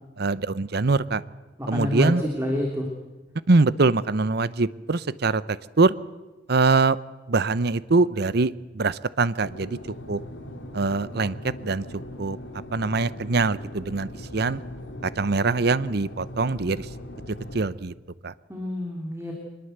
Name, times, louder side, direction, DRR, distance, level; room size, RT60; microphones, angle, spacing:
voice 1, 0.2-1.2 1.7-2.2 3.5-5.9 6.5-7.0 7.3-9.8 10.1-10.2 10.7-11.9 12.2-12.4 12.7-14.6 15.0-16.9 17.5-17.9 18.2-18.3, right 3 dB, 60° right, 17 dB, 0.8 m, -23 dB
voice 2, 1.6-2.9 18.5-19.3, left 1 dB, 15° right, 0 dB, 3.3 m, -28 dB
sound 1, 9.4-17.6, left 1 dB, 80° left, 3.6 m, -40 dB
24.5 x 21.0 x 8.0 m, 1.2 s
head